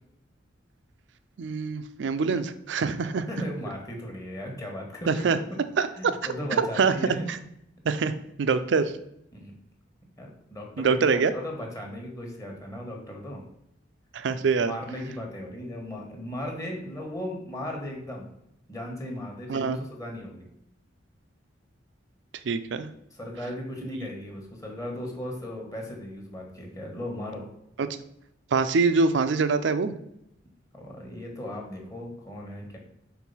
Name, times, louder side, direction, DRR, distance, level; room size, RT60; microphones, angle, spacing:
voice 1, 1.4-3.3 5.1-5.4 5.8-5.9 6.6-6.9 7.8-8.1 8.4-9.0 10.8-11.3 14.1-14.7 19.5-19.8 22.4-22.9 28.5-29.9, right 4 dB, 70° right, 11 dB, 0.4 m, -24 dB
voice 2, 3.3-5.6 6.0-7.3 9.3-9.5 10.2-13.4 14.3-18.3 18.7-20.5 23.1-27.5 30.7-32.8, left 1 dB, 20° left, 0 dB, 1.2 m, -37 dB
4.6 x 3.8 x 5.4 m, 0.78 s
head